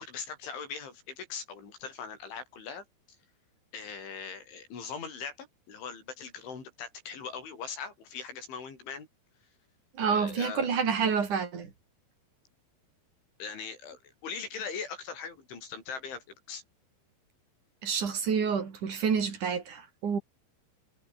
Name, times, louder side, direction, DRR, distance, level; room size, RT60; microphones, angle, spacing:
voice 1, 0.0-2.9 3.7-9.1 10.0-10.7 13.4-16.6, left 6 dB, 90° left, 8.5 m, -40 dB
voice 2, 10.0-11.7 17.8-20.2, right 6 dB, 45° right, 4.6 m, -28 dB
omnidirectional pair, 5.3 m